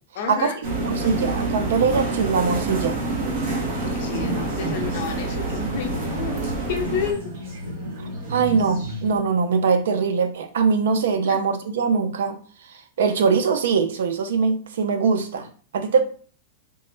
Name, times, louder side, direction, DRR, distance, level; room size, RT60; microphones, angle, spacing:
voice 1, 0.1-0.6 3.8-7.2 11.2-11.4, left 7 dB, 45° left, 5 dB, 0.5 m, -30 dB
sound 1, 0.6-7.1, right 3 dB, 40° right, 0.8 m, -27 dB
voice 2, 0.8-3.0 8.3-12.4 13.0-15.5 15.7-16.0, right 5 dB, 75° right, 9 dB, 0.4 m, -22 dB
sound 2, 4.1-9.2, right 1 dB, 60° right, 1.2 m, -33 dB
3.2 x 2.0 x 3.1 m, 0.42 s
supercardioid pair, 170°, 0 cm